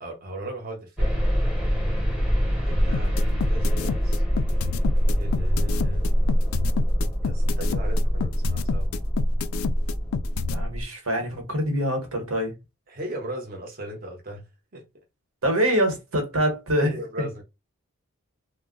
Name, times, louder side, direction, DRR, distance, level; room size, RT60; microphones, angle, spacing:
voice 1, 0.0-1.2 2.5-4.2 5.2-6.1 7.2-8.9 12.9-14.8 16.8-17.4, equal, 40° right, 0.8 m, -37 dB
sound 1, 1.0-10.8, equal, 5° right, 0.8 m, -24 dB
sound 2, 2.9-10.6, left 7 dB, 75° left, 0.3 m, -29 dB
voice 2, 10.5-12.5 15.4-17.3, equal, 75° right, 1.2 m, -25 dB
2.3 x 2.0 x 3.7 m
head